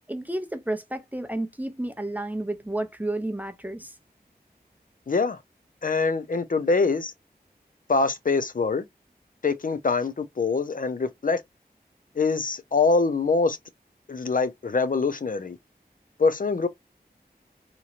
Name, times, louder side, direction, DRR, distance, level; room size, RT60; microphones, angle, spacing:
voice 1, 0.1-4.0, right 1 dB, 10° right, 0.5 m, -31 dB
voice 2, 5.1-5.4 5.8-7.1 7.9-8.8 9.4-11.4 12.2-13.6 14.1-15.6 16.2-16.7, left 4 dB, 55° left, 0.5 m, -24 dB
2.9 x 2.8 x 2.5 m
wide cardioid pair, 55°, 17 cm